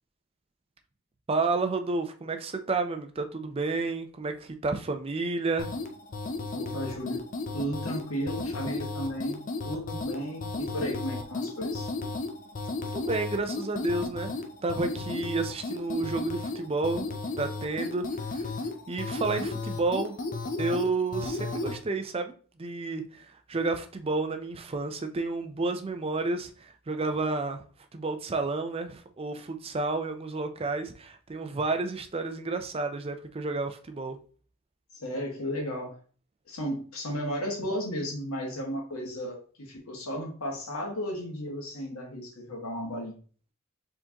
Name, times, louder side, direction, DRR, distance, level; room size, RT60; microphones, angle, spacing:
voice 1, 1.3-5.7 12.9-14.4 14.6-17.1 17.4-18.6 18.9-20.2 20.6-22.3 22.6-27.6 27.9-34.2, right 3 dB, 25° right, 0.4 m, -31 dB
sound 1, 5.6-21.8, left 3 dB, 35° left, 0.5 m, -34 dB
voice 2, 6.5-7.2 7.5-11.9 35.0-36.0 36.5-43.2, equal, 75° left, 1.7 m, -34 dB
4.6 x 3.8 x 2.9 m
head